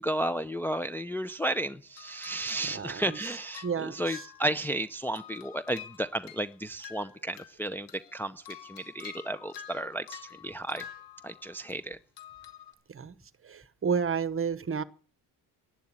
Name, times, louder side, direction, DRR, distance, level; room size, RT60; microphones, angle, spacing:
voice 1, 0.0-10.8 11.2-12.0, right 1 dB, 5° left, 8 dB, 0.6 m, -33 dB
sound 1, 2.0-4.9 5.1-7.6 7.9-11.7 12.2-12.7, left 10 dB, 85° left, 2.3 m, -48 dB
voice 2, 2.6-3.2 3.6-4.2 12.9-13.2 13.4-14.8, right 6 dB, 30° right, 16 dB, 1.1 m, -31 dB
11.5 x 11.0 x 8.6 m, 0.39 s
cardioid pair, 115°, 41 cm